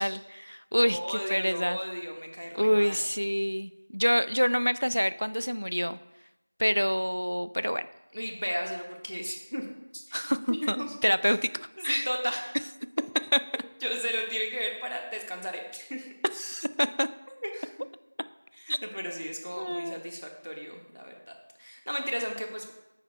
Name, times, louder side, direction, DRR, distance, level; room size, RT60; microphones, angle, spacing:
voice 1, 0.0-1.8 2.5-6.0 6.6-7.9 10.1-12.1 13.3-13.6 16.3-17.1 18.7-18.8 19.6-20.0, equal, 75° left, 14 dB, 0.3 m, -27 dB
voice 2, 0.7-3.0 8.1-9.7 9.9-10.9 11.8-12.6 13.8-16.1 17.4-17.7 18.6-21.3 21.6-22.7, equal, 80° right, 1 dB, 1.6 m, -35 dB
9.9 x 7.1 x 2.3 m, 0.95 s
figure-of-eight pair, 180°, 0 cm